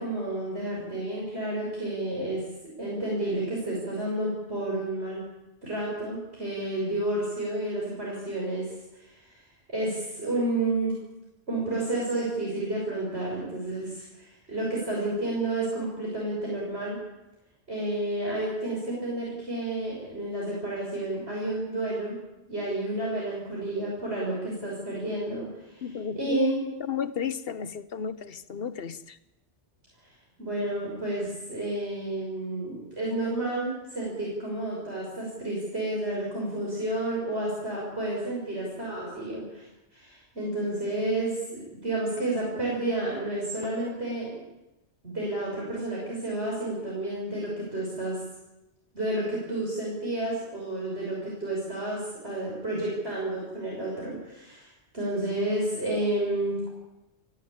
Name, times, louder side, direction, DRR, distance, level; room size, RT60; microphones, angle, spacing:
voice 1, 0.0-2.4 2.8-5.2 5.6-9.4 9.7-10.9 11.5-17.0 17.7-22.1 22.5-26.6 30.4-39.7 39.9-44.4 45.0-48.2 48.9-56.7, right 1 dB, 65° right, 6.6 m, -30 dB
voice 2, 25.8-26.4 26.9-29.2, left 7 dB, 55° left, 1.1 m, -33 dB
30.0 x 12.5 x 8.7 m
omnidirectional pair, 1.2 m